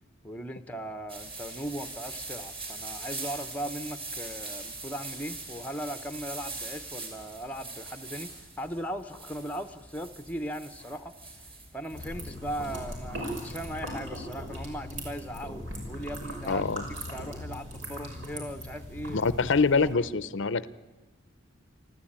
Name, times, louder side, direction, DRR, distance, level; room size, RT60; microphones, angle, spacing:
voice 1, 0.2-11.1 11.7-15.6 15.9-16.6 17.1-19.3 19.9-20.1, equal, 5° left, 9 dB, 0.8 m, -38 dB
sound 1, 1.1-13.7, right 3 dB, 25° right, 4.4 m, -42 dB
sound 2, 11.9-19.9, equal, 70° right, 5.9 m, -39 dB
voice 2, 16.5-16.9 19.1-20.7, left 4 dB, 60° left, 16 dB, 0.6 m, -25 dB
28.5 x 12.5 x 8.8 m, 1.2 s
head